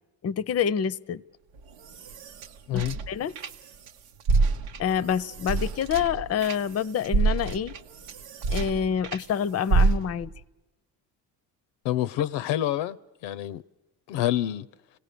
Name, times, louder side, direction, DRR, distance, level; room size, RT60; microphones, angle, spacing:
voice 1, 0.2-1.2 2.7-3.3 4.8-7.7 8.5-10.3, left 8 dB, 35° left, 0.6 m, -27 dB
sound 1, 1.6-3.9 4.2-9.3 9.7-10.4, right 3 dB, 85° right, 1.0 m, -27 dB
voice 2, 11.8-13.0 13.2-13.6 14.1-14.7, left 13 dB, 80° left, 0.6 m, -27 dB
26.5 x 17.5 x 6.7 m
supercardioid pair, 75°, 43 cm